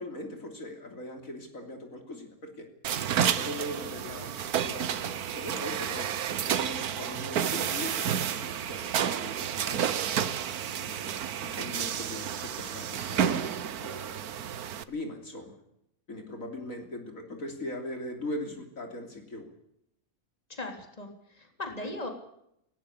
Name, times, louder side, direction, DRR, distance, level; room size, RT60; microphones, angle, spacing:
voice 1, 0.0-2.7 3.2-6.1 6.5-10.4 10.8-11.1 11.4-13.5 13.8-14.5 14.9-15.6 16.1-19.5 21.8-21.9, left 1 dB, 65° left, 4 dB, 3.7 m, -40 dB
sound 1, 2.8-14.8, right 9 dB, 85° right, 1.5 m, -31 dB
voice 2, 20.5-22.1, left 2 dB, 25° left, 4 dB, 3.6 m, -38 dB
18.5 x 18.0 x 8.4 m, 0.77 s
omnidirectional pair, 1.5 m